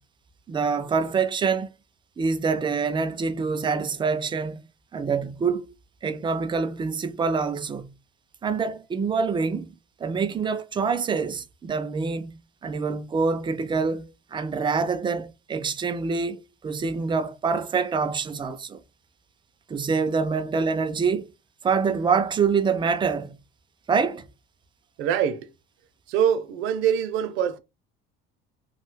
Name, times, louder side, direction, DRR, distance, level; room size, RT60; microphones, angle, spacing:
voice 1, 0.5-1.7 2.2-4.6 4.9-5.7 6.0-7.9 8.4-18.8 19.7-21.3 21.6-23.3 23.9-24.3, right 5 dB, 20° right, 0.4 m, -26 dB
voice 2, 25.0-25.5 26.1-27.6, right 8 dB, 75° right, 0.6 m, -24 dB
3.0 x 2.2 x 3.2 m
cardioid pair, 120°, 21 cm